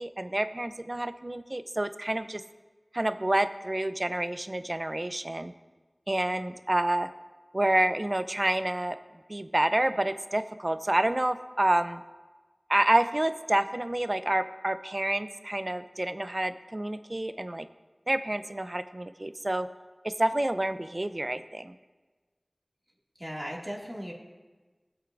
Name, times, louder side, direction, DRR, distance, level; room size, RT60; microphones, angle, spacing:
voice 1, 0.0-2.4 2.9-5.5 6.1-7.1 7.5-9.0 9.3-12.0 12.7-17.7 18.1-19.7 20.0-21.7, right 1 dB, 50° right, 11 dB, 0.5 m, -28 dB
voice 2, 23.2-24.1, equal, 15° right, -3 dB, 2.2 m, -37 dB
22.5 x 7.9 x 2.6 m, 1.3 s
wide cardioid pair, 40°, 0 cm